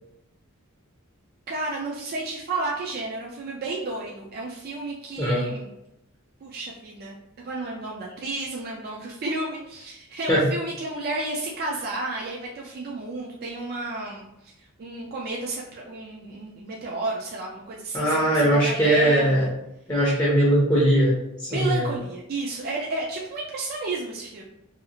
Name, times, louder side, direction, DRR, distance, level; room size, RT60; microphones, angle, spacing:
voice 1, 1.5-5.7 6.4-7.2 7.4-19.5 21.5-24.4, right 2 dB, 45° right, -2 dB, 0.4 m, -32 dB
voice 2, 5.2-5.5 10.3-10.5 17.9-19.5 19.9-21.1 21.4-21.9, right 1 dB, 15° left, -6 dB, 0.6 m, -20 dB
2.7 x 2.4 x 2.8 m, 0.84 s
head